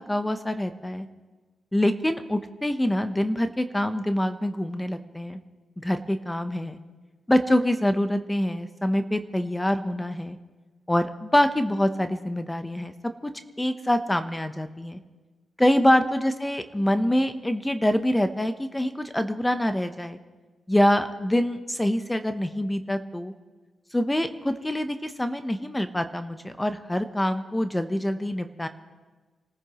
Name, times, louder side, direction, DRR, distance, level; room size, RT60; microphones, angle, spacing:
voice 1, 0.1-1.1 1.7-5.4 5.8-6.8 7.3-10.4 10.9-12.9 13.2-13.3 13.6-15.0 15.6-20.2 20.7-23.3 23.9-28.7, left 1 dB, 15° left, 9 dB, 0.9 m, -25 dB
26.5 x 14.0 x 3.1 m, 1.3 s
supercardioid pair, 60°, 0 cm